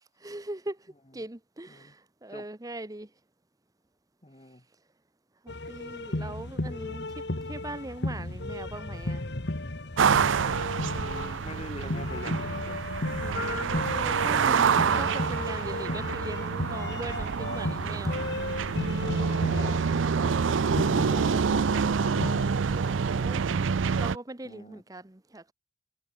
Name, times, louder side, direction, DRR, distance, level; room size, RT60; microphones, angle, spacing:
voice 1, 0.2-3.1 5.4-7.0 7.4-9.2 13.2-18.2 22.7-23.4 24.0-25.5, right 1 dB, 20° right, 0.9 m, -40 dB
voice 2, 4.2-4.6 10.8-12.8 14.3-15.1 15.8-16.1 19.2-19.8 20.1-22.2 24.4-24.8, left 1 dB, 30° left, 2.2 m, -44 dB
sound 1, 5.5-23.2, left 2 dB, 60° left, 1.7 m, -34 dB
sound 2, 10.0-24.2, right 6 dB, 80° right, 0.5 m, -27 dB
head